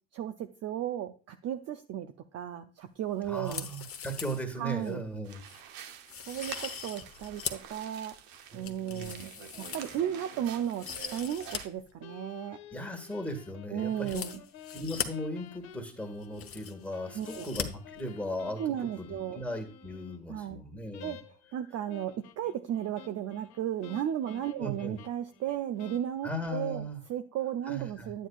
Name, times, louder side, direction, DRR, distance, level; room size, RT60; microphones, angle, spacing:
voice 1, 0.1-3.7 4.6-5.0 6.3-8.1 8.5-9.3 9.6-10.9 11.1-12.6 13.7-14.4 17.1-17.5 18.6-19.4 20.3-20.6 21.0-21.2 21.5-28.3, right 10 dB, 35° right, 7 dB, 0.6 m, -34 dB
voice 2, 3.3-5.4 8.5-9.2 12.7-14.2 14.7-21.2 24.6-25.0 26.2-27.0 27.7-28.1, equal, 5° left, 3 dB, 1.9 m, -37 dB
sound 1, 3.4-4.4 4.8-4.9 5.5-5.6 6.1-7.7 8.1-10.3 10.6-11.6 11.9-12.0 14.0-15.1 15.9-16.0 16.2-16.9 17.2-17.7 17.9-18.0, left 8 dB, 30° left, 1.1 m, -40 dB
sound 2, 5.3-11.7, right 9 dB, 55° right, 1.1 m, -48 dB
sound 3, 9.7-10.9 12.0-20.2 20.9-21.6 21.9-26.5, left 8 dB, 65° left, 1.4 m, -52 dB
9.1 x 9.0 x 2.4 m, 0.36 s
hypercardioid pair, 85°, 43 cm